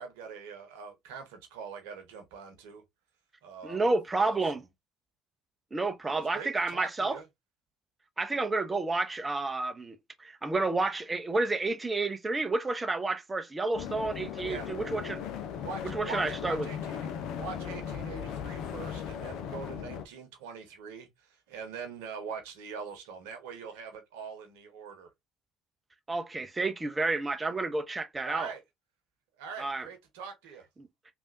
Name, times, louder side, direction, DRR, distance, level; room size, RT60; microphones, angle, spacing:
voice 1, 0.0-2.8 3.4-4.7 6.0-7.3 14.4-14.7 15.6-17.1 17.3-25.1 28.3-28.6 29.4-30.7, right 5 dB, 70° right, 1.0 m, -43 dB
voice 2, 3.6-4.6 5.7-7.2 8.2-15.2 15.9-16.7 26.1-28.5 29.6-29.9, right 3 dB, 20° right, 0.6 m, -30 dB
sound 1, 13.7-20.0, left 8 dB, 60° left, 0.5 m, -37 dB
3.4 x 2.5 x 2.6 m
hypercardioid pair, 55°, 0 cm